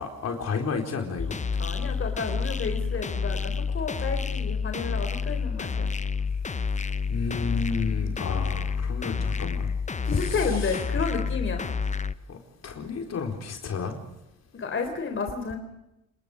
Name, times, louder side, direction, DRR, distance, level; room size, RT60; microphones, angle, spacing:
voice 1, 0.0-1.4 7.1-9.7 10.1-10.8 12.3-14.0, left 5 dB, 60° left, 4 dB, 4.4 m, -32 dB
sound 1, 1.2-12.1, left 5 dB, 25° left, 0.8 m, -29 dB
voice 2, 1.6-5.9 10.0-11.7 14.5-15.6, left 4 dB, 40° left, 5 dB, 3.9 m, -31 dB
29.5 x 20.0 x 5.1 m, 0.88 s
cardioid pair, 90°, 30 cm